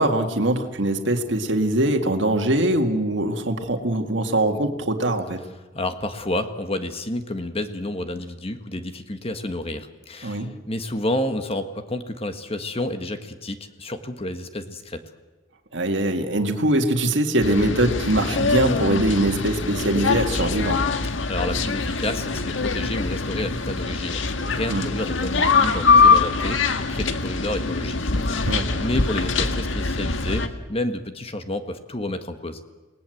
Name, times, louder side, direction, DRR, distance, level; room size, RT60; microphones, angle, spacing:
voice 1, 0.0-5.4 10.2-10.5 15.7-20.8 24.7-24.9 28.5-28.7, right 1 dB, 70° right, 5 dB, 2.0 m, -22 dB
voice 2, 5.7-15.0 21.3-32.6, left 1 dB, 30° left, 8 dB, 1.6 m, -30 dB
sound 1, 17.4-30.5, left 4 dB, 90° left, 1.6 m, -23 dB
29.0 x 19.0 x 7.9 m, 1.2 s
head